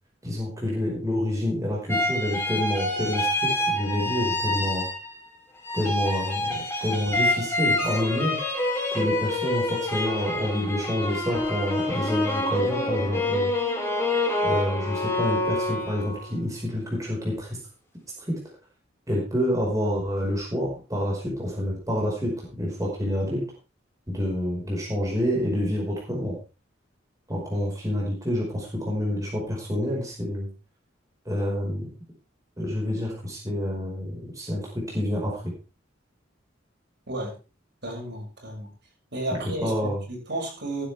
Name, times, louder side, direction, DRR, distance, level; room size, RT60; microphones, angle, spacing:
voice 1, 0.2-4.9 5.7-8.4 8.9-13.5 14.4-17.6 18.3-18.4 19.1-23.4 24.1-26.4 27.3-30.5 31.3-31.9 32.6-35.4 39.6-40.0, equal, 20° right, -3 dB, 5.2 m, -28 dB
sound 1, 1.9-5.3 5.6-16.3, left 1 dB, 15° left, 3.5 m, -27 dB
voice 2, 37.8-38.7 39.1-40.9, right 1 dB, 60° right, 0 dB, 6.8 m, -32 dB
15.5 x 11.5 x 3.5 m, 0.32 s
head